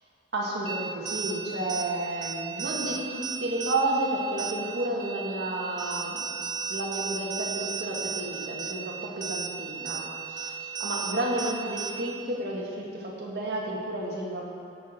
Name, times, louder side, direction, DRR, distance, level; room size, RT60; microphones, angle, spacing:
voice 1, 0.3-6.2 6.7-14.4, right 1 dB, 60° right, -3 dB, 1.8 m, -31 dB
sound 1, 0.7-12.3, right 6 dB, 25° right, 0.5 m, -35 dB
15.0 x 6.1 x 4.3 m, 2.4 s
head